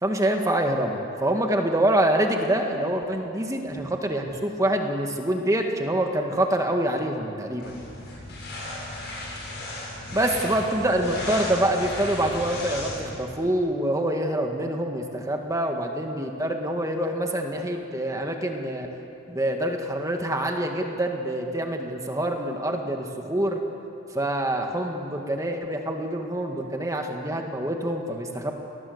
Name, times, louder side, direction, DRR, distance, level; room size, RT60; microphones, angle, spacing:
voice 1, 0.0-7.7 10.1-18.9 19.3-23.6 24.1-28.5, right 1 dB, 15° right, 3 dB, 1.8 m, -26 dB
sound 1, 7.6-13.2, left 1 dB, 55° left, 7.8 m, -35 dB
28.0 x 19.5 x 8.0 m, 2.8 s
head